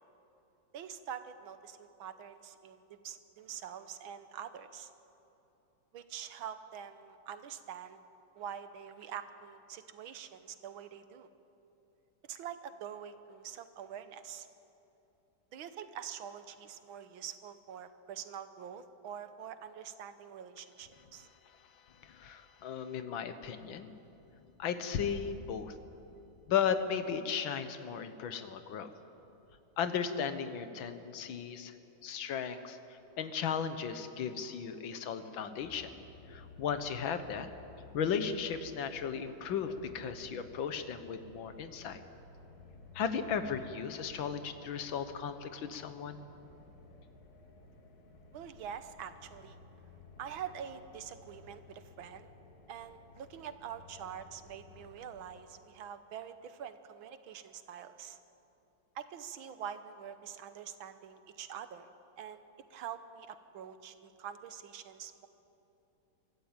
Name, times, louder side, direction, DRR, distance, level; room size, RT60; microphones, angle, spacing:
voice 1, 0.7-4.9 5.9-8.0 8.4-11.3 12.2-14.5 15.5-21.3 48.3-49.6 50.2-52.3 52.7-58.2 59.0-62.4 62.7-65.3, right 8 dB, 80° right, 11 dB, 1.8 m, -45 dB
voice 2, 21.9-23.9 24.6-25.7 26.5-28.9 29.8-31.8 32.0-35.9 36.3-37.5 37.9-42.0 43.0-46.2, left 7 dB, 70° left, 10 dB, 1.8 m, -35 dB
sound 1, 35.6-55.4, left 2 dB, 50° left, 1.9 m, -55 dB
23.5 x 14.0 x 8.9 m, 3.0 s
omnidirectional pair, 2.2 m